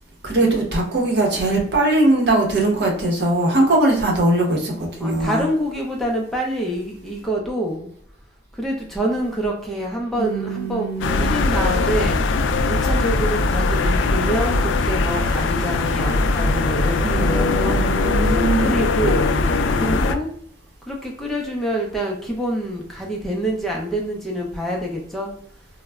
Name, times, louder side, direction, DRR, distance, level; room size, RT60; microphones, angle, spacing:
voice 1, 0.2-5.4 10.2-11.5 17.0-18.8, right 2 dB, 60° right, 0.9 m, -21 dB
voice 2, 5.0-7.9 8.5-12.2 12.7-17.8 18.3-20.3 20.9-25.3, right 1 dB, ahead, 0.4 m, -26 dB
sound 1, 11.0-20.2, left 3 dB, 75° left, 0.3 m, -20 dB
3.7 x 2.1 x 2.2 m
head